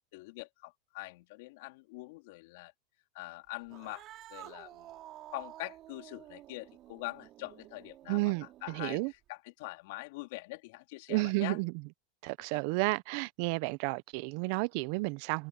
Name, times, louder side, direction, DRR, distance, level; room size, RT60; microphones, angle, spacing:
voice 1, 0.1-2.7 3.2-4.0 4.3-4.9 5.3-11.6 12.4-12.6, left 22 dB, 65° left, 3.3 m, -44 dB
Cat, 3.6-9.3, right 14 dB, 45° right, 3.2 m, -51 dB
voice 2, 8.1-9.1 11.1-11.7 12.2-15.5, right 25 dB, 60° right, 0.7 m, -32 dB
hypercardioid pair, 115°, 0 cm